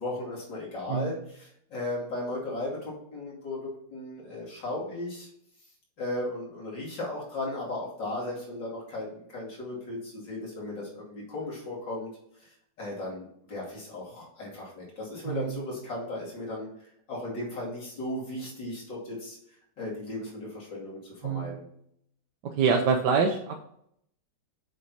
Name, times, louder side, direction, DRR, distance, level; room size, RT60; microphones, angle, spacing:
voice 1, 0.0-5.3 6.0-12.1 12.8-19.4 19.8-21.6, left 2 dB, 85° left, -5 dB, 3.4 m, -36 dB
voice 2, 15.2-15.7 21.2-21.5 22.4-23.8, right 5 dB, 70° right, 2 dB, 1.3 m, -26 dB
7.3 x 4.6 x 4.0 m, 0.70 s
omnidirectional pair, 1.9 m